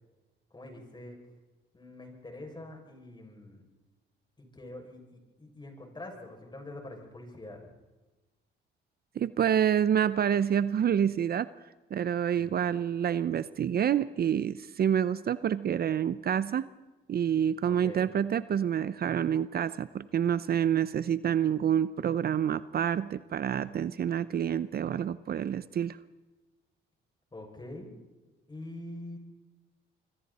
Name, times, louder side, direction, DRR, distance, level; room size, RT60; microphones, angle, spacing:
voice 1, 0.5-1.2 1.7-3.7 4.4-7.7 12.4-12.7 17.6-18.1 27.3-28.0 28.5-29.2, left 1 dB, 20° left, 2 dB, 6.6 m, -45 dB
voice 2, 9.2-11.5 11.9-16.7 17.1-26.0, right 9 dB, 50° right, 15 dB, 0.7 m, -28 dB
26.5 x 23.0 x 4.3 m, 1.2 s
cardioid pair, 90°, 20 cm